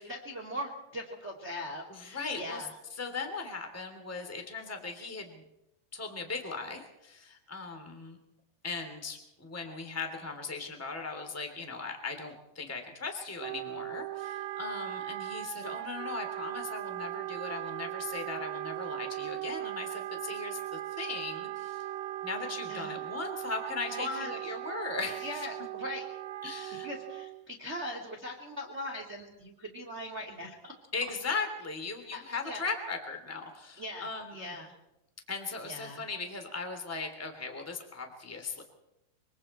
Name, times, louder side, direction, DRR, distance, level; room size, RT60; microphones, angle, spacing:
voice 1, 0.0-2.7 22.7-23.0 23.9-24.6 25.2-26.1 26.8-30.7 32.1-32.7 33.8-34.7 35.6-36.0, left 1 dB, 20° right, 1 dB, 2.0 m, -40 dB
voice 2, 1.9-2.7 2.9-5.4 5.9-8.2 8.6-21.9 22.2-25.5 26.4-26.9 30.9-34.5 35.3-38.6, left 4 dB, 5° left, 4 dB, 1.8 m, -38 dB
Wind instrument woodwind instrument, 13.4-27.5, right 14 dB, 75° right, 2.6 m, -38 dB
24.5 x 24.0 x 4.4 m, 0.88 s
omnidirectional pair, 5.5 m